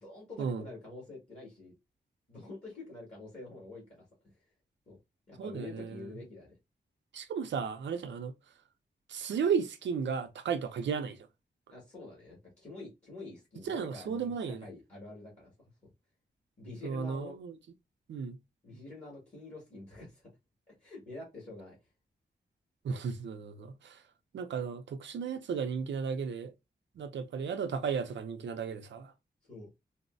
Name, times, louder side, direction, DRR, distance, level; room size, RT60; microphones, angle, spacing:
voice 1, 0.0-1.7 2.3-4.0 4.9-5.0 5.3-6.5 11.7-15.5 16.6-17.4 18.6-20.3 20.8-21.8 29.4-29.7, left 2 dB, 40° left, 1.9 m, -47 dB
voice 2, 5.4-6.0 7.1-8.3 9.1-11.2 13.7-14.7 16.8-17.5 18.1-18.4 22.8-24.0 24.3-26.5 27.0-29.1, right 6 dB, 85° right, 0.5 m, -34 dB
4.0 x 2.0 x 2.6 m
wide cardioid pair, 90°, 18 cm